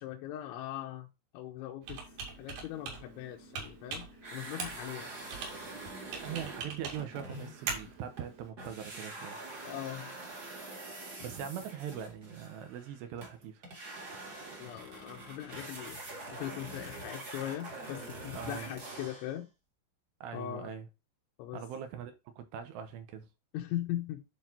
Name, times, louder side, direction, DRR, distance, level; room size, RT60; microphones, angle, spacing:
voice 1, 0.0-2.1 2.4-5.1 9.6-10.1 14.6-16.0 16.3-19.5 20.3-20.7 21.4-21.6 23.5-24.2, left 13 dB, 80° left, 3.1 m, -40 dB
Computer keyboard, 1.8-8.5, right 5 dB, 55° right, 3.8 m, -43 dB
sound 1, 4.2-8.3 8.6-19.4, right 2 dB, 35° right, 1.5 m, -45 dB
voice 2, 6.2-9.4 11.2-13.6 18.3-18.7 20.2-20.9 21.5-23.3, right 8 dB, 75° right, 2.7 m, -41 dB
12.0 x 4.0 x 2.7 m
omnidirectional pair, 5.8 m